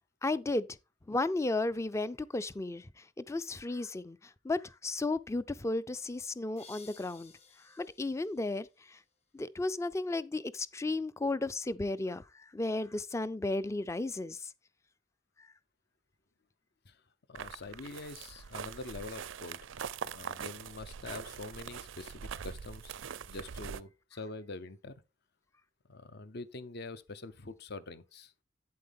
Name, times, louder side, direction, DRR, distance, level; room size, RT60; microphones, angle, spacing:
voice 1, 0.2-0.7 1.1-7.3 7.7-9.0 9.3-14.5 15.4-15.5, left 2 dB, 15° left, 0.4 m, -34 dB
sound 1, 6.6-9.3, left 5 dB, 35° left, 2.0 m, -58 dB
voice 2, 17.3-19.6 20.1-22.9 23.3-25.0 25.9-28.4, left 3 dB, 60° left, 0.8 m, -45 dB
sound 2, 17.3-23.8, right 7 dB, 85° right, 0.5 m, -43 dB
8.5 x 7.8 x 3.5 m
head